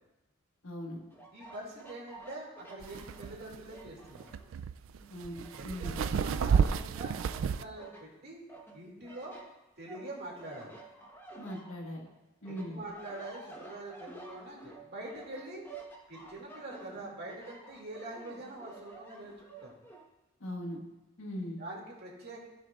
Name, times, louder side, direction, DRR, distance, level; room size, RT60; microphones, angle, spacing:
voice 1, 0.6-1.0 5.1-6.2 11.4-12.1 12.4-12.9 20.4-20.8 21.2-21.6, left 1 dB, 80° left, 0 dB, 1.6 m, -40 dB
sound 1, 1.1-4.6 5.0-6.8 7.2-8.0 8.5-12.1 12.4-20.0, right 3 dB, 10° left, 1.1 m, -51 dB
voice 2, 1.3-4.3 5.6-8.4 8.7-9.4 9.8-10.8 12.5-15.6 16.1-19.3 19.6-19.8 21.6-22.5, right 2 dB, 50° right, -3 dB, 2.3 m, -44 dB
sound 2, 2.8-7.6, right 6 dB, 65° right, 0.3 m, -31 dB
16.5 x 6.1 x 2.4 m, 1.0 s
head